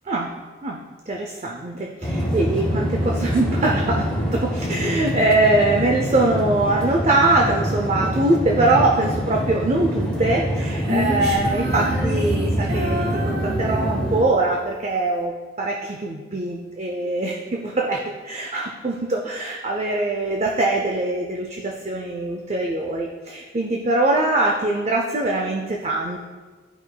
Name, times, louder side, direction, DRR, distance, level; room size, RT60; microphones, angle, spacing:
voice 1, 0.6-4.1 4.3-26.2, right 2 dB, 35° right, 0 dB, 0.5 m, -22 dB
sound 1, 2.0-14.2, equal, 5° left, 0.9 m, -25 dB
Female singing, 10.8-14.4, equal, 55° right, 1.1 m, -29 dB
12.0 x 5.0 x 2.2 m, 1.4 s
head